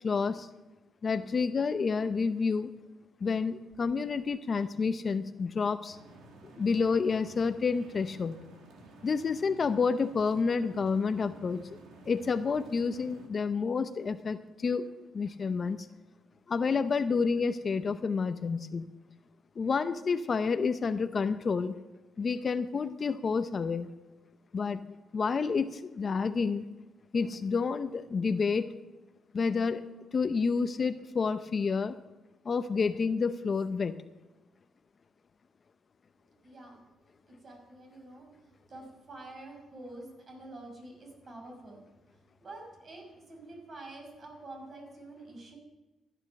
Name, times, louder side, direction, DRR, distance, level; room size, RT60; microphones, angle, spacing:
voice 1, 0.0-0.5 1.0-2.7 3.2-6.0 6.6-8.4 9.0-11.7 12.1-15.9 16.5-18.9 19.6-21.8 22.2-23.9 24.5-24.8 25.1-26.7 27.1-28.7 29.3-32.0 32.4-34.0, left 5 dB, 40° left, 11 dB, 0.7 m, -29 dB
sound 1, 5.9-13.3, right 3 dB, 80° right, 2.1 m, -53 dB
voice 2, 36.4-36.9 37.3-41.8 42.2-45.6, right 2 dB, 45° right, 1 dB, 5.6 m, -47 dB
14.5 x 9.8 x 6.5 m, 1.1 s
cardioid pair, 90°, 0 cm